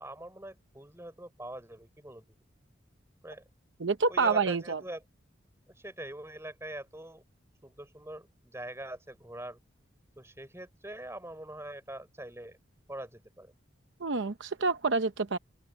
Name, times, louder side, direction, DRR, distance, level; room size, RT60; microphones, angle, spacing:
voice 1, 0.0-2.2 3.2-3.4 4.1-5.0 5.7-7.2 7.6-9.6 10.2-12.6 12.9-13.5, right 1 dB, 15° right, 4.5 m, -43 dB
voice 2, 3.8-4.8 14.0-15.4, right 4 dB, 75° right, 0.8 m, -28 dB
open air
head